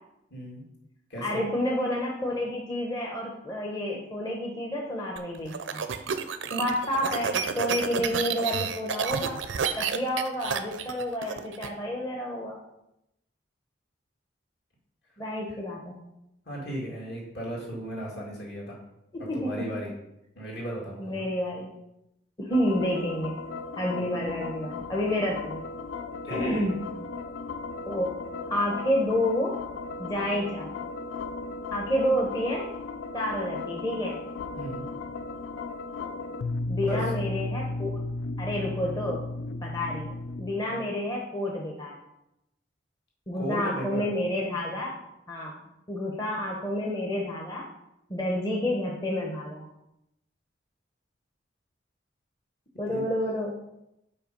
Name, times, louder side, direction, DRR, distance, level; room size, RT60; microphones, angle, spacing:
voice 1, 0.3-0.6 1.1-1.4 15.5-15.6 16.5-18.8 19.3-19.9 20.4-21.3 24.0-24.2 26.2-26.5 34.5-34.9 36.8-37.1 40.6-40.9 43.3-44.1 52.9-53.0, right 1 dB, 60° left, -3 dB, 2.3 m, -36 dB
voice 2, 1.2-5.8 6.5-9.4 9.8-12.6 15.2-16.0 19.3-19.8 21.0-21.7 22.4-23.3 23.8-25.6 26.3-26.8 27.9-28.1 28.5-29.5 30.0-30.7 31.7-32.7 33.1-34.2 36.7-38.0 38.4-39.2 39.6-40.1 40.4-42.0 43.3-44.9 45.3-45.6 45.9-47.6 48.1-49.6 52.8-53.5, left 1 dB, 20° left, -2 dB, 0.8 m, -29 dB
sound 1, 5.2-11.7, right 6 dB, 80° right, 0.5 m, -30 dB
sound 2, 22.5-40.5, left 3 dB, 85° left, 0.4 m, -35 dB
5.5 x 4.4 x 5.2 m, 0.84 s
head